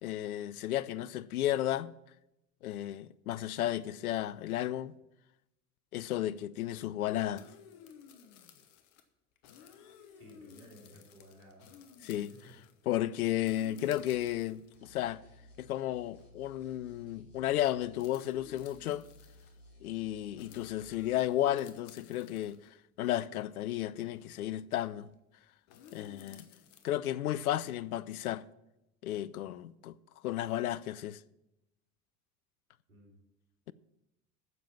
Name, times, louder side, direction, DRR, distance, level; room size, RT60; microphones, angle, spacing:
voice 1, 0.0-1.9 2.6-4.9 5.9-7.5 12.0-12.3 12.9-15.2 15.6-19.0 19.8-22.6 23.0-25.1 25.9-26.5 26.8-28.4 29.0-29.9 30.2-31.2, left 13 dB, 80° left, 0.5 m, -33 dB
sound 1, 7.4-9.0 9.4-12.8 13.4-14.8 15.5-15.6 16.2-16.3 16.6-16.8 18.0-19.6 20.4-22.7 24.1-24.2 25.7-26.9, left 8 dB, 60° left, 1.2 m, -56 dB
voice 2, 10.1-11.8 12.1-12.6 32.9-33.2, right 1 dB, 75° right, 3.2 m, -56 dB
sound 2, 14.7-18.0 18.3-21.2, equal, 30° left, 4.4 m, -58 dB
9.5 x 7.2 x 7.5 m
figure-of-eight pair, 65°, 43 cm